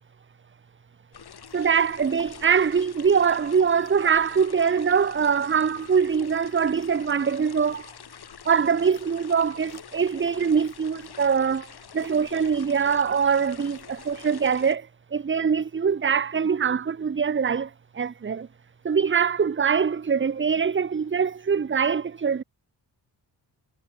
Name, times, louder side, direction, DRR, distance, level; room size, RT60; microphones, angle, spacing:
sound 1, 1.1-14.8, left 8 dB, 60° left, 2.8 m, -46 dB
voice 1, 1.5-7.9 8.4-18.5 18.8-22.4, right 6 dB, 25° right, 0.9 m, -23 dB
cardioid pair, 80°, 44 cm